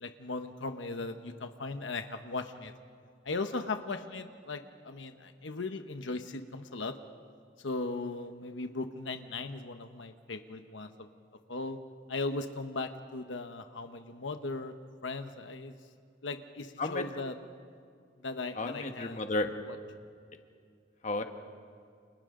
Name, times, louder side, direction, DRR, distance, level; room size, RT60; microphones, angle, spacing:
voice 1, 0.0-2.7 3.2-6.9 7.6-11.1 11.5-11.8 12.1-14.7 15.0-15.7 16.2-17.3 18.2-19.2, left 3 dB, 85° left, 7 dB, 1.1 m, -38 dB
voice 2, 18.5-19.5 21.0-21.2, left 2 dB, 40° left, 6 dB, 1.4 m, -32 dB
29.5 x 28.5 x 3.8 m, 2.3 s
head